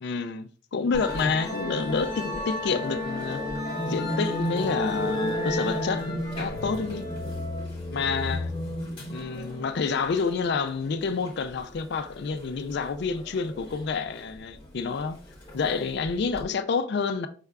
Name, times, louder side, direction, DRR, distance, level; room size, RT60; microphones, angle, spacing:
voice 1, 0.0-3.4 3.9-7.1 7.9-8.5 9.1-15.2 15.5-17.3, left 5 dB, 55° left, 0.4 m, -28 dB
Musical instrument, 0.9-16.4, left 1 dB, 25° left, 1.6 m, -33 dB
5.4 x 3.4 x 2.3 m
head